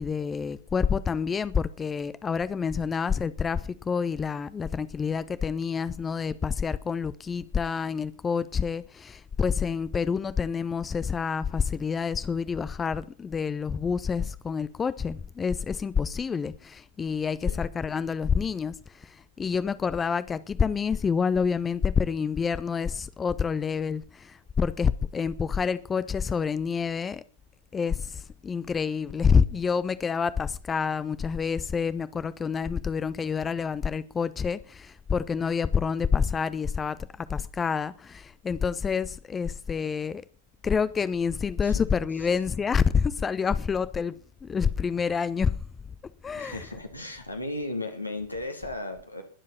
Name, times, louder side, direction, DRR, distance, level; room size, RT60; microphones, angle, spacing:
voice 1, 0.0-27.2 27.7-40.2 40.6-45.6 46.2-46.6, left 6 dB, 20° left, 0.7 m, -28 dB
voice 2, 46.3-49.2, left 2 dB, 85° left, 2.9 m, -35 dB
21.0 x 7.5 x 5.8 m
figure-of-eight pair, 90°, 0 cm